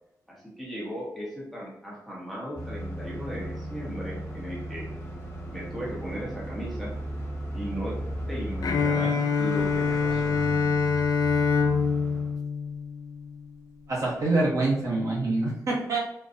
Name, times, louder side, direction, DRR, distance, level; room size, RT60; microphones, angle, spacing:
voice 1, 0.3-4.9 5.5-7.0 7.5-10.4, equal, ahead, -6 dB, 1.0 m, -37 dB
sound 1, 2.6-12.4, equal, 40° left, 1.3 m, -36 dB
Bowed string instrument, 8.6-13.5, left 5 dB, 65° left, 0.3 m, -25 dB
voice 2, 13.9-16.0, right 2 dB, 55° right, -4 dB, 0.9 m, -25 dB
4.0 x 2.2 x 2.6 m, 0.79 s
wide cardioid pair, 135°, 7 cm